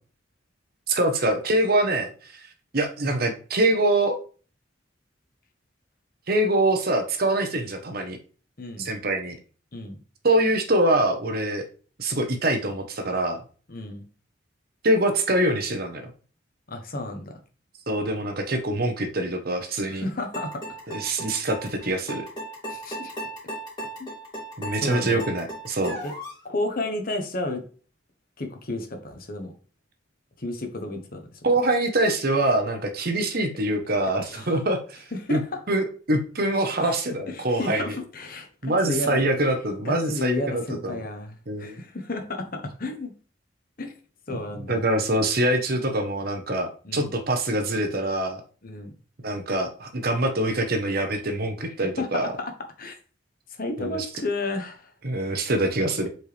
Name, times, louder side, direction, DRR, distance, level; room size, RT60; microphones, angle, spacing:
voice 1, 0.9-2.4 2.7-4.2 6.3-8.2 8.8-9.4 10.2-11.7 12.0-13.4 14.8-16.0 17.9-20.0 20.9-22.3 24.6-26.0 31.4-35.0 35.3-35.4 35.7-37.8 38.6-41.0 41.5-41.8 44.7-48.4 49.2-52.3 53.8-54.1 55.0-56.1, right 1 dB, 55° right, 5 dB, 1.1 m, -24 dB
voice 2, 8.6-8.9 9.7-10.0 13.7-14.1 16.7-17.4 19.9-20.6 22.7-23.1 24.0-24.1 24.8-25.2 26.0-26.1 26.4-27.6 28.4-29.5 30.4-31.4 34.2-34.5 35.1-35.4 36.7-37.0 37.3-39.2 39.8-43.1 43.8-44.0 44.3-44.8 46.8-47.1 48.6-48.9 51.8-52.5 52.8-53.0 53.5-54.9, left 2 dB, 50° left, 5 dB, 1.2 m, -32 dB
sound 1, 20.3-26.4, right 1 dB, 25° left, 3.0 m, -36 dB
7.8 x 4.6 x 3.4 m, 0.40 s
head